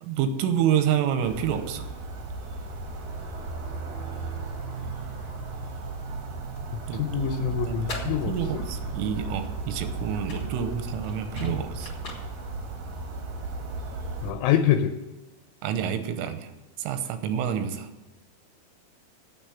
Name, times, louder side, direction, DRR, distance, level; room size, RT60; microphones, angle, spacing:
voice 1, 0.0-1.9 6.9-11.9 15.6-16.5 16.8-17.9, right 9 dB, 85° right, 8 dB, 3.4 m, -28 dB
sound 1, 1.2-14.3, right 3 dB, 60° right, 2.0 m, -35 dB
voice 2, 6.7-8.6 14.2-15.0, left 10 dB, 80° left, 7 dB, 2.9 m, -26 dB
sound 2, 7.6-13.6, left 3 dB, 30° left, 2.6 m, -44 dB
9.0 x 7.9 x 8.5 m, 1.1 s
omnidirectional pair, 5.7 m